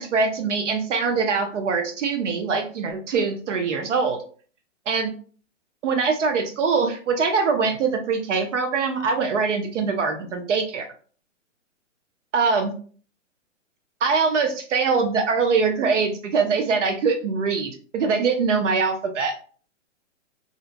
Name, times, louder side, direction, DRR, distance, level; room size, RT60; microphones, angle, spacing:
voice 1, 0.0-4.2 4.9-5.1 5.8-10.8 12.3-12.7 14.0-19.3, right 5 dB, 70° right, 5 dB, 0.7 m, -23 dB
2.7 x 2.2 x 2.6 m, 0.43 s
hypercardioid pair, 145°, 38 cm